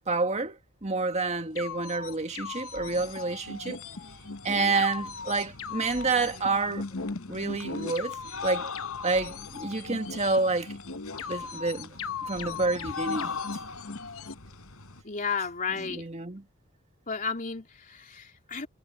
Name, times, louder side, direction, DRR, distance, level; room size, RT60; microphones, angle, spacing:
voice 1, 0.1-3.8 4.4-6.9 7.3-8.2 8.4-8.7 9.0-10.7 11.3-11.9 12.3-13.3 15.8-16.4, right 3 dB, 30° right, 1.8 m, -28 dB
sound 1, 1.6-14.3, left 5 dB, 65° left, 1.1 m, -38 dB
sound 2, 2.0-2.1 2.3-15.0, left 5 dB, 85° left, 4.0 m, -42 dB
voice 2, 15.0-16.0 17.1-18.7, left 5 dB, 40° left, 3.1 m, -33 dB
head